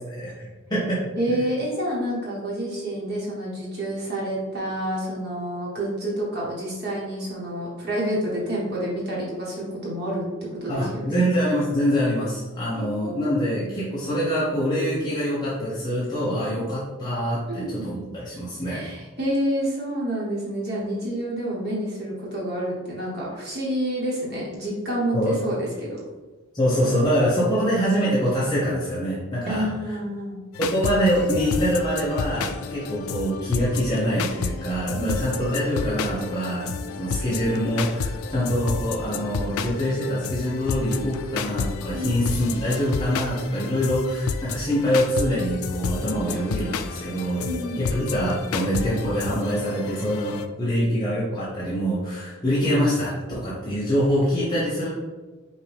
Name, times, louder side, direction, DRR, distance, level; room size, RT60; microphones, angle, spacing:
voice 1, 0.1-1.0 1.3-1.4 10.7-18.8 25.1-25.3 26.5-29.7 30.6-36.7 37.0-47.5 47.7-54.9, equal, 20° left, -9 dB, 0.8 m, -24 dB
voice 2, 1.2-11.2 12.7-13.4 16.6-16.7 17.5-17.9 18.7-26.0 29.5-30.4 35.0-35.3 41.9-42.3 47.4-47.8, right 1 dB, 50° right, -5 dB, 1.3 m, -28 dB
Bewitched - Dark Hip Hop Music, 30.5-50.5, left 5 dB, 85° left, 0.3 m, -31 dB
5.3 x 2.6 x 3.4 m, 1.3 s
head